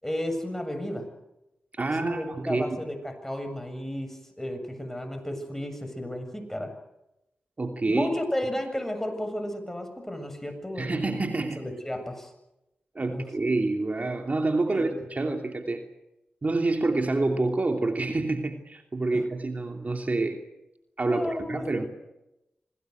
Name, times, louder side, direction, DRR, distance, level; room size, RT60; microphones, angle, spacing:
voice 1, 0.0-1.1 1.8-6.7 7.9-11.0 11.6-12.3 13.1-13.3 14.7-15.0 19.1-19.2 21.0-21.9, left 1 dB, 10° left, 6 dB, 7.6 m, -33 dB
voice 2, 1.8-2.8 7.6-8.1 10.8-11.6 12.9-15.8 16.4-20.4 21.0-21.9, right 2 dB, 45° right, 4 dB, 3.0 m, -27 dB
26.5 x 19.0 x 8.1 m, 0.92 s
cardioid pair, 45°, 4 cm